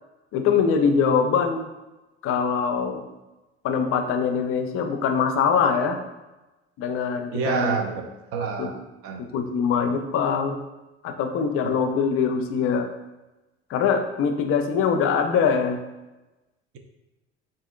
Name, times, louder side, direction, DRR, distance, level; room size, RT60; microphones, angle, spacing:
voice 1, 0.3-1.7 2.2-3.1 3.6-6.0 6.8-7.8 8.6-8.7 9.2-10.6 11.0-12.9 13.7-15.8, left 6 dB, 45° left, 6 dB, 0.4 m, -23 dB
voice 2, 7.3-8.0 8.3-9.2, right 6 dB, 45° right, 5 dB, 0.5 m, -27 dB
3.5 x 2.7 x 2.3 m, 1.0 s
figure-of-eight pair, 55°, 33 cm